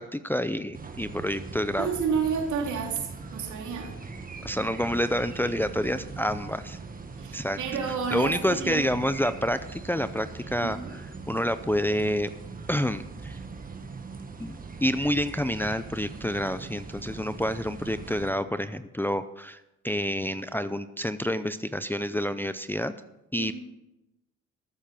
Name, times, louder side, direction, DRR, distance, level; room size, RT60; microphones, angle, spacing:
voice 1, 0.0-1.9 4.4-6.8 7.3-7.6 8.1-10.8 11.3-12.3 12.7-13.4 14.4-22.9 23.3-23.5, equal, 5° left, 11 dB, 0.5 m, -28 dB
sound 1, 0.7-18.3, right 4 dB, 30° right, 1.7 m, -41 dB
voice 2, 1.8-4.0 7.2-8.8 10.6-10.9 23.4-23.5, right 6 dB, 75° right, 1 dB, 3.0 m, -30 dB
13.5 x 7.4 x 7.0 m, 0.92 s
cardioid pair, 90°, 30 cm